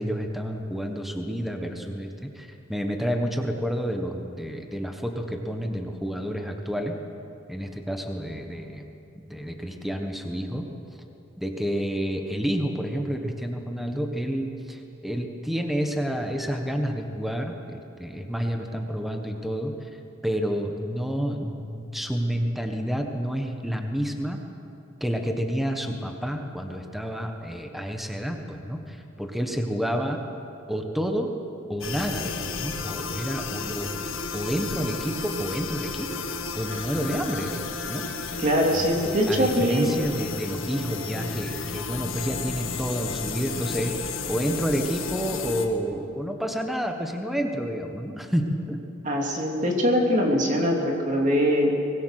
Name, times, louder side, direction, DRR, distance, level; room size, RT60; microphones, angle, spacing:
voice 1, 0.0-7.0 7.5-8.8 9.2-10.7 11.4-19.9 20.2-24.4 25.0-30.2 30.7-31.3 31.7-33.9 34.3-36.2 36.5-37.6 37.9-38.0 38.7-48.8, equal, ahead, 3 dB, 1.4 m, -29 dB
sound 1, 31.8-45.7, left 5 dB, 80° left, 1.8 m, -33 dB
voice 2, 38.4-39.9 49.0-51.7, equal, 40° right, 0 dB, 3.1 m, -22 dB
24.5 x 21.0 x 6.6 m, 2.7 s
head